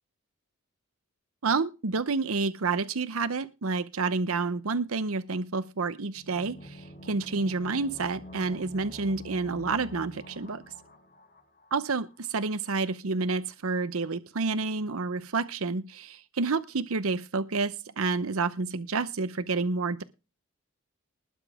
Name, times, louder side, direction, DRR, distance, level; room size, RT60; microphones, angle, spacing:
voice 1, 1.4-10.6 11.7-20.0, right 4 dB, 80° right, 13 dB, 0.8 m, -29 dB
sound 1, 6.1-11.8 12.1-12.2, left 1 dB, 40° left, 2.2 m, -46 dB
20.5 x 7.1 x 3.6 m, 0.30 s
head